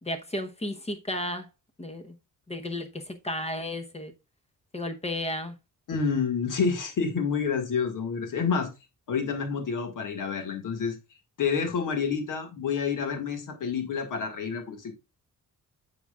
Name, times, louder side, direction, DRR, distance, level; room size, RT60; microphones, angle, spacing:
voice 1, 0.0-1.5 1.8-2.1 2.5-4.1 4.7-5.5, left 1 dB, 20° left, 0.9 m, -33 dB
voice 2, 5.9-8.7 9.1-11.0 11.4-14.9, left 6 dB, 70° left, 1.9 m, -28 dB
8.9 x 7.8 x 2.4 m
wide cardioid pair, 170°, 33 cm